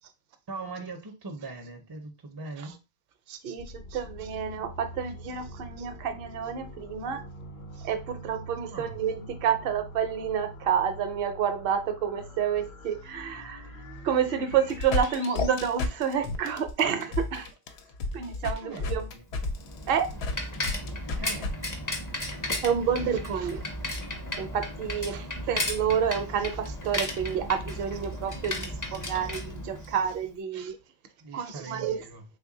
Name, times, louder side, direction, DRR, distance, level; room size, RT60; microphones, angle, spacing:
voice 1, 0.5-2.8 8.6-8.9 18.4-19.3 21.1-21.5 25.2-25.3 31.2-32.2, right 3 dB, 35° right, 0.4 m, -41 dB
voice 2, 3.3-7.2 7.8-13.7 14.0-17.5 18.1-19.0 19.9-20.1 22.6-23.6 24.4-30.8 31.3-32.0, right 8 dB, 65° right, 0.7 m, -29 dB
sound 1, 3.6-15.6, equal, 60° left, 0.7 m, -45 dB
sound 2, 14.5-21.5, left 3 dB, 90° left, 0.8 m, -31 dB
Bicycle, 19.3-30.2, left 1 dB, 25° left, 0.5 m, -35 dB
3.2 x 2.2 x 3.7 m
omnidirectional pair, 1.1 m